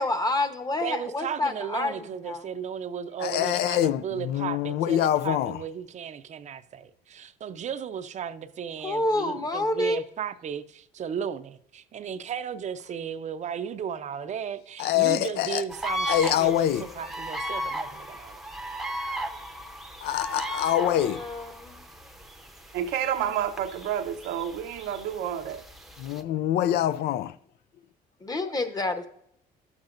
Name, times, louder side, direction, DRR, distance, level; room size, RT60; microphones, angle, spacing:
voice 1, 0.0-2.4 8.8-10.0 20.8-21.8 28.2-29.1, left 2 dB, 20° left, 0.9 m, -28 dB
voice 2, 0.8-16.7 17.0-18.4, right 8 dB, 45° right, 0.6 m, -35 dB
voice 3, 3.2-5.6 14.8-15.6 16.1-16.9 20.0-21.2 26.0-27.3, left 12 dB, 70° left, 0.4 m, -25 dB
sound 1, 15.7-26.2, right 1 dB, ahead, 0.7 m, -36 dB
voice 4, 22.7-25.6, right 9 dB, 90° right, 0.9 m, -29 dB
11.5 x 7.3 x 2.5 m
cardioid pair, 110°, 17 cm